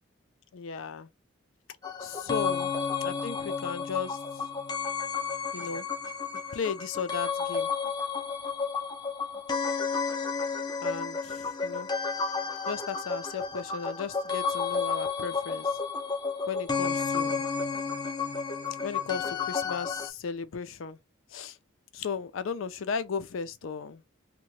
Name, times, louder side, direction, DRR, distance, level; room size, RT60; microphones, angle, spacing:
voice 1, 0.5-1.1 2.0-2.7 3.0-4.2 5.5-5.9 6.5-7.7 10.8-11.9 12.7-15.8 16.5-17.4 18.8-21.0 21.3-21.6 21.9-24.0, left 5 dB, 75° left, 0.4 m, -35 dB
sound 1, 1.8-20.1, left 5 dB, 20° left, 0.5 m, -32 dB
2.8 x 2.1 x 3.0 m
head